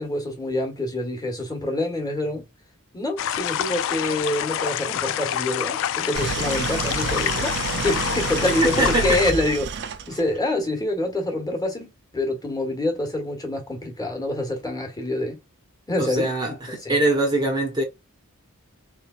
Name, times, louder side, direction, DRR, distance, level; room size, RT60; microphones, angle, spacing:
voice 1, 0.0-2.4 2.9-15.4 15.9-16.3 16.8-17.0, left 1 dB, 15° left, 1.3 m, -26 dB
sound 1, 3.2-9.3, left 10 dB, 60° left, 0.3 m, -27 dB
Idling, 6.2-10.4, right 6 dB, 55° right, 0.4 m, -29 dB
voice 2, 8.8-9.2 16.0-17.8, right 2 dB, 20° right, 0.8 m, -23 dB
3.5 x 3.2 x 2.3 m
head